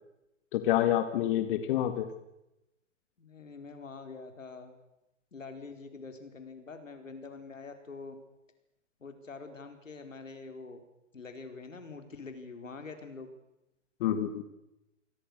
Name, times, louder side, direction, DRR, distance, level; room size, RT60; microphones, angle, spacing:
voice 1, 0.5-2.1 14.0-14.4, left 12 dB, 45° left, 9 dB, 2.1 m, -27 dB
voice 2, 3.2-4.8 5.3-8.1 9.0-10.8 11.1-13.3, left 4 dB, 85° left, 7 dB, 4.8 m, -45 dB
28.0 x 21.0 x 6.6 m, 0.91 s
hypercardioid pair, 130°, 38 cm